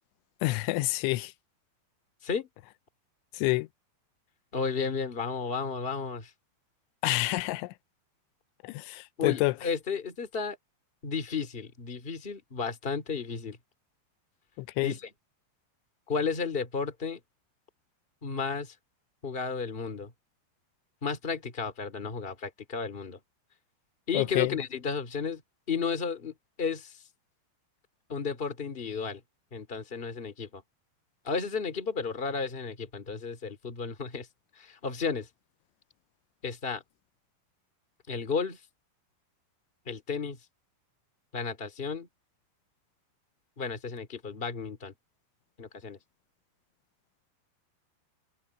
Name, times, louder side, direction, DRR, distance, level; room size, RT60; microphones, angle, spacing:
voice 1, 0.4-1.3 3.3-3.7 7.0-7.7 8.6-9.5 14.6-14.9 24.1-24.6, left 21 dB, 85° left, 3.1 m, -28 dB
voice 2, 4.5-6.3 9.2-10.6 11.0-13.6 14.8-15.1 16.1-17.2 18.2-18.7 19.2-20.1 21.0-23.2 24.1-25.4 25.7-27.0 28.1-29.2 29.5-30.6 31.2-34.3 34.5-35.3 36.4-36.8 38.1-38.6 39.8-40.4 41.3-42.1 43.6-44.9 45.6-46.0, left 5 dB, 20° left, 1.4 m, -33 dB
omnidirectional pair, 5.3 m